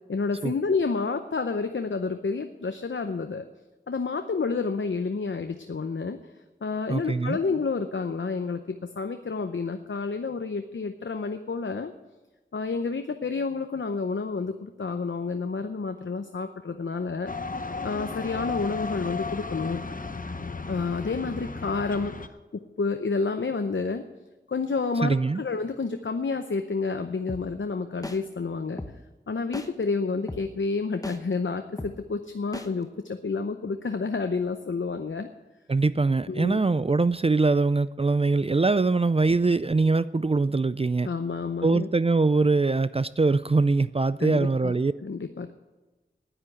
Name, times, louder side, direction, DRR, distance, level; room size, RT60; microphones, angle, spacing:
voice 1, 0.1-3.4 3.9-6.2 6.6-11.9 12.5-17.3 17.8-19.8 20.7-22.1 22.5-24.0 24.5-28.8 29.3-35.3 36.3-36.6 41.0-41.9 44.2-45.5, left 4 dB, 75° left, 7 dB, 0.7 m, -29 dB
voice 2, 6.9-7.4 25.0-25.4 35.7-41.1 41.6-44.9, right 3 dB, 30° right, 16 dB, 0.4 m, -23 dB
sound 1, 17.3-22.3, left 4 dB, 45° left, 0.9 m, -34 dB
sound 2, 27.3-27.4 28.0-28.2 28.8-28.9 29.5-29.7 30.3-30.4 31.0-31.2 31.8-31.9 32.5-32.7, left 1 dB, 15° left, 1.1 m, -35 dB
10.5 x 10.0 x 8.2 m, 1.2 s
wide cardioid pair, 55°, 20 cm